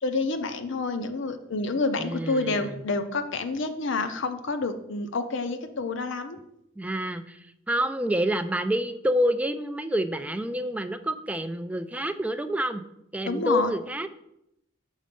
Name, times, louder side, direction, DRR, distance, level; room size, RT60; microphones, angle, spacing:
voice 1, 0.0-6.4 13.2-13.7, left 3 dB, 65° left, 9 dB, 0.6 m, -28 dB
voice 2, 2.0-2.8 6.8-12.8 13.1-14.1, equal, 5° right, 10 dB, 0.3 m, -28 dB
6.3 x 4.3 x 5.2 m, 0.80 s
head